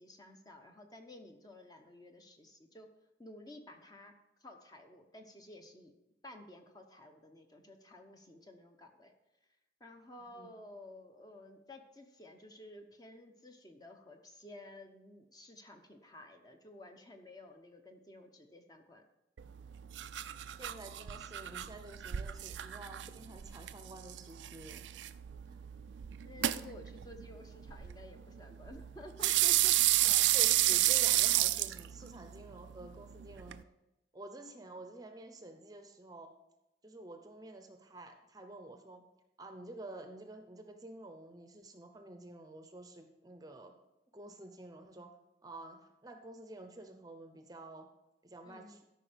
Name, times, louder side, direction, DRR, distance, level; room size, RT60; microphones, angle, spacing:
voice 1, 0.0-2.9 3.2-4.1 4.4-5.9 6.2-9.1 9.8-19.0 26.3-29.8 48.4-48.8, left 1 dB, 20° left, 4 dB, 0.9 m, -53 dB
voice 2, 10.2-10.5 20.6-24.8 25.5-25.6 30.0-33.6 34.1-36.3 36.8-39.0 39.4-43.7 44.1-45.1 45.4-47.9 48.2-48.8, right 2 dB, 20° right, 6 dB, 0.7 m, -50 dB
sound 1, 19.4-33.6, right 15 dB, 85° right, 0.4 m, -32 dB
13.0 x 5.4 x 5.1 m, 0.95 s
head